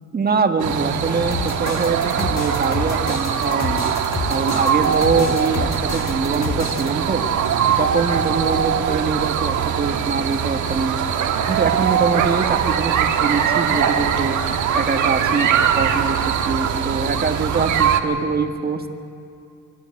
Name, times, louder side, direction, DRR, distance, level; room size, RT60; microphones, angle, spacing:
voice 1, 0.1-3.8 4.3-7.2 7.8-11.0 11.5-14.4 14.7-18.9, right 4 dB, 30° right, 5 dB, 1.7 m, -23 dB
sound 1, 0.6-18.0, right 8 dB, 75° right, 1.5 m, -21 dB
sound 2, 1.3-6.9, left 5 dB, 60° left, 1.6 m, -29 dB
24.5 x 12.5 x 9.7 m, 2.5 s
cardioid pair, 90°, 30 cm